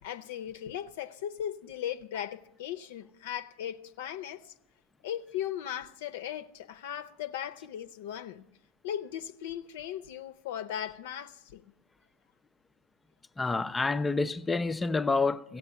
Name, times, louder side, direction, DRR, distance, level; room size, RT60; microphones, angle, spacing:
voice 1, 0.0-4.4 5.0-8.4 8.8-11.6, left 10 dB, 50° left, 0.7 m, -37 dB
voice 2, 13.4-15.6, left 3 dB, 10° left, 0.5 m, -28 dB
15.5 x 8.4 x 9.7 m
figure-of-eight pair, 90°, 0 cm